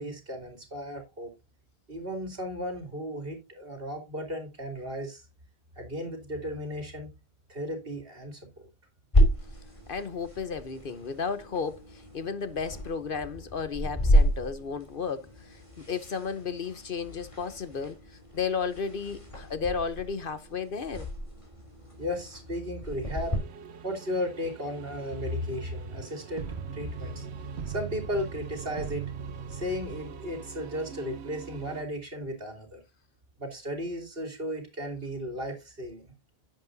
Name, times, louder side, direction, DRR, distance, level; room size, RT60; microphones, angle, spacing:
voice 1, 0.0-1.3 1.9-5.2 5.8-7.1 7.5-8.4 22.0-23.4 23.8-27.3 27.6-29.0 29.5-32.8 33.4-36.0, equal, 60° right, 3.6 m, -35 dB
sound 1, 9.1-23.4, equal, 30° left, 3.3 m, -31 dB
voice 2, 9.9-21.1, left 5 dB, 55° left, 1.0 m, -33 dB
sound 2, 23.0-31.8, right 7 dB, 80° right, 1.1 m, -41 dB
10.5 x 8.5 x 2.7 m
omnidirectional pair, 1.1 m